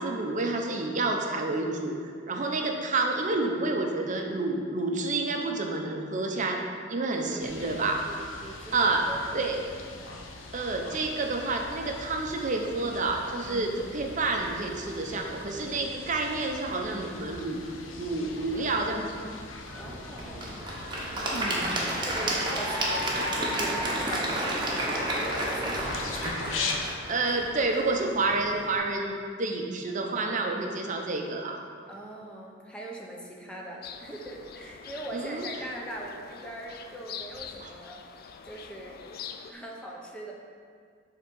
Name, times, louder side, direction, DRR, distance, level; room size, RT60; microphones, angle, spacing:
voice 1, 0.0-6.6 6.9-8.0 8.7-9.0 9.3-9.6 10.5-17.6 18.0-19.1 21.3-21.8 27.1-31.6 35.1-35.5 37.6-37.7, right 3 dB, 40° right, 2 dB, 0.7 m, -29 dB
voice 2, 7.1-9.6 9.9-10.2 13.4-13.7 19.8-20.6 21.4-26.0 31.9-38.0 38.4-40.3, right 1 dB, 5° left, -2 dB, 0.7 m, -41 dB
sound 1, 7.4-26.8, left 3 dB, 90° left, 0.7 m, -41 dB
Applause / Crowd, 19.7-28.7, right 1 dB, 25° right, 1.0 m, -31 dB
sound 2, 33.8-39.5, left 7 dB, 50° left, 0.3 m, -44 dB
6.9 x 3.7 x 5.4 m, 2.1 s
head